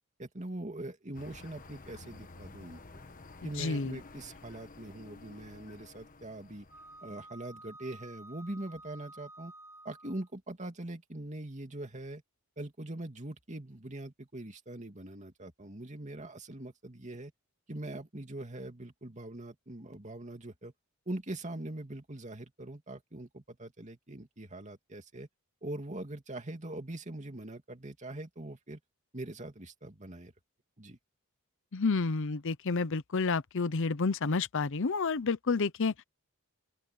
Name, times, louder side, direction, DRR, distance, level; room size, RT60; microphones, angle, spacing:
voice 1, 0.2-2.8 3.4-6.7 7.0-9.5 9.8-12.2 12.6-17.3 17.7-20.7 21.1-25.3 25.6-28.8 29.1-30.3 30.8-31.0, right 1 dB, 35° right, 2.6 m, -42 dB
sound 1, 1.1-7.2, left 3 dB, 40° left, 1.4 m, -52 dB
voice 2, 3.4-4.0 31.7-36.0, left 4 dB, 60° left, 0.7 m, -30 dB
Wind instrument woodwind instrument, 6.7-10.3, right 2 dB, 15° right, 6.7 m, -51 dB
open air
head